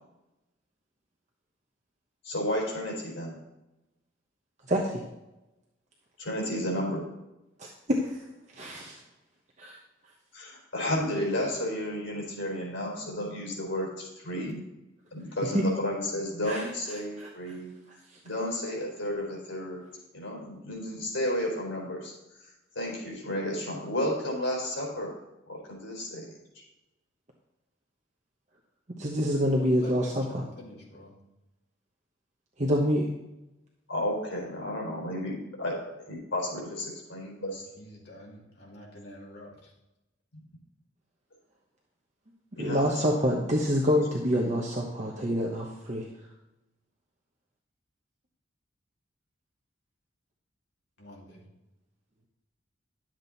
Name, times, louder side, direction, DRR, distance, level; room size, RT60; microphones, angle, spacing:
voice 1, 2.2-3.4 6.2-7.0 10.3-14.6 15.1-17.7 18.2-19.8 20.1-22.1 22.8-25.1 25.5-26.2 33.9-37.6 42.5-43.4, left 1 dB, 85° left, -3 dB, 4.1 m, -32 dB
voice 2, 4.7-5.0 7.6-8.2 8.5-9.0 9.6-9.8 15.5-15.6 16.5-16.7 17.2-17.5 29.0-30.4 32.6-33.1 42.6-46.1, equal, 40° right, -1 dB, 1.1 m, -27 dB
voice 3, 29.6-31.1 37.5-39.7 51.0-51.5, equal, 55° left, -3 dB, 2.6 m, -47 dB
11.0 x 7.5 x 4.1 m, 0.97 s
head